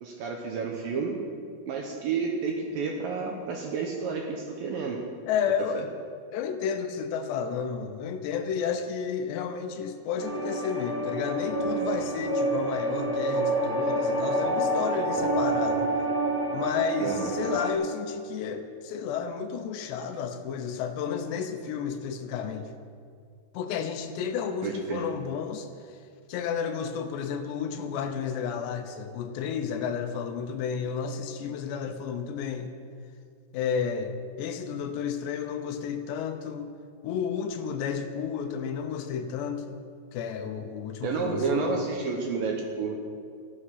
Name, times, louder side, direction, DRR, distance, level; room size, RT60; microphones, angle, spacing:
voice 1, 0.0-1.2 1.7-5.0 5.7-5.8 17.0-17.3 24.6-25.0 41.0-43.0, right 5 dB, 70° right, 1 dB, 2.2 m, -30 dB
voice 2, 5.3-5.9 6.3-15.9 16.5-22.7 23.5-26.0 26.3-32.7 33.5-34.1 34.4-36.7 37.0-39.8 40.1-41.9, left 6 dB, 80° left, 7 dB, 2.9 m, -32 dB
sound 1, 10.2-17.7, right 1 dB, 5° right, 1.7 m, -28 dB
14.5 x 12.0 x 5.8 m, 2.2 s
omnidirectional pair, 5.1 m